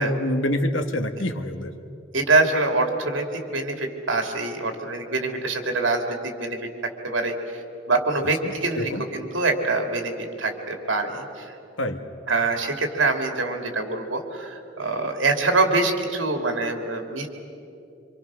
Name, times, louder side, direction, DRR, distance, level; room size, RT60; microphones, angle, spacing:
voice 1, 0.0-1.7 8.8-9.0 11.8-12.0, left 1 dB, 80° left, 7 dB, 1.5 m, -26 dB
voice 2, 2.1-6.7 7.0-7.6 7.9-11.5 12.3-17.3, right 3 dB, 85° right, 4 dB, 2.7 m, -25 dB
27.0 x 25.5 x 6.3 m, 2.7 s
head